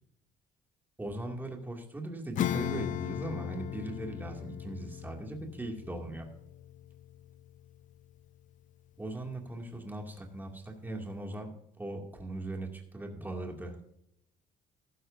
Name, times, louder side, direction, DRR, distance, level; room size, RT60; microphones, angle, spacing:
voice 1, 1.0-6.3 9.0-11.5 11.8-13.9, right 2 dB, 10° right, 2 dB, 2.4 m, -39 dB
Acoustic guitar / Strum, 2.4-8.4, left 12 dB, 50° left, 0.4 m, -38 dB
15.0 x 12.5 x 2.7 m, 0.80 s
cardioid pair, 110°, 17 cm